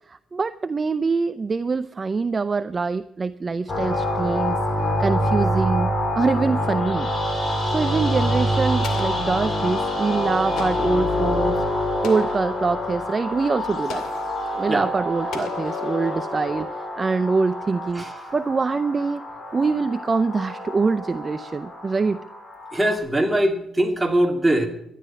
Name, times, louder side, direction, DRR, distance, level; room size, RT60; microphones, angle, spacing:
voice 1, 0.1-4.6 5.0-7.1 7.7-14.1 14.5-18.0 18.3-19.2 19.5-22.2, right 4 dB, 30° right, 13 dB, 0.5 m, -24 dB
sound 1, 3.7-23.0, equal, 35° left, 4.3 m, -26 dB
Alarm, 3.9-12.0, left 6 dB, 60° left, 4.6 m, -35 dB
Explosion, 8.8-9.7 10.6-11.1 12.0-12.6 13.9-14.4 15.3-16.2, left 6 dB, 80° left, 2.2 m, -38 dB
voice 2, 22.7-24.7, right 1 dB, 10° right, 2 dB, 2.7 m, -21 dB
13.5 x 11.0 x 5.9 m, 0.78 s
cardioid pair, 90°, 0 cm